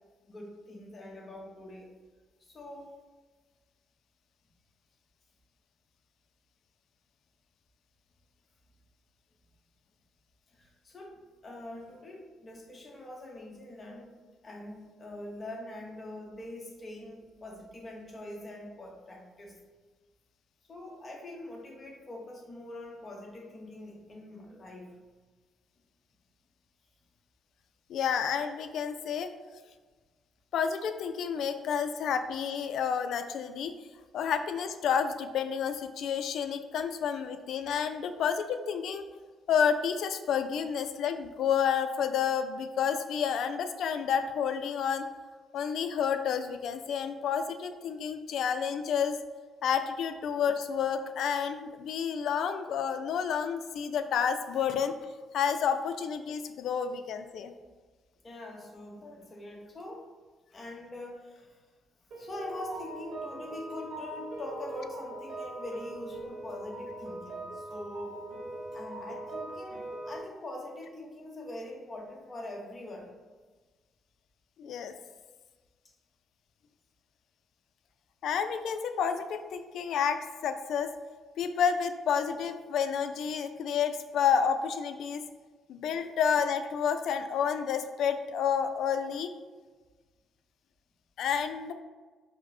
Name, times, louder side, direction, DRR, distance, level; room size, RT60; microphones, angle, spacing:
voice 1, 0.2-1.9 2.4-2.9 10.5-14.1 14.4-19.6 20.6-24.9 58.2-60.1 60.5-61.6 62.1-68.2 68.7-73.1, left 1 dB, 35° left, 0 dB, 0.9 m, -43 dB
voice 2, 27.9-29.3 30.5-33.7 34.1-39.1 39.5-45.1 45.5-49.2 49.6-54.9 55.3-57.5 74.6-74.9 78.2-80.9 81.4-85.2 85.7-89.3 91.2-91.7, left 7 dB, 75° left, 9 dB, 0.3 m, -30 dB
sound 1, 62.1-70.2, right 2 dB, 70° right, 1.0 m, -41 dB
4.9 x 2.0 x 4.2 m, 1.4 s
cardioid pair, 90°, 0 cm